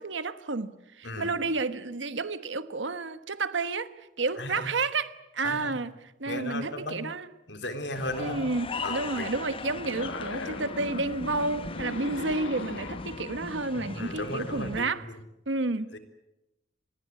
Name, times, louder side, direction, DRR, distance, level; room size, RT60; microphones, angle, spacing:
voice 1, 0.0-3.9 4.2-5.9 6.2-7.3 8.2-15.0 15.5-15.9, right 3 dB, 75° right, 12 dB, 1.3 m, -31 dB
voice 2, 1.0-1.4 4.4-4.7 5.4-5.8 6.3-7.1 7.5-8.4 8.8-9.3 13.7-15.2 15.9-16.0, left 1 dB, 65° left, 7 dB, 3.9 m, -36 dB
sound 1, 7.9-14.8, left 4 dB, 30° left, 0.9 m, -39 dB
sound 2, 8.6-14.2, left 2 dB, 90° left, 1.8 m, -41 dB
27.0 x 21.0 x 8.4 m, 0.93 s
head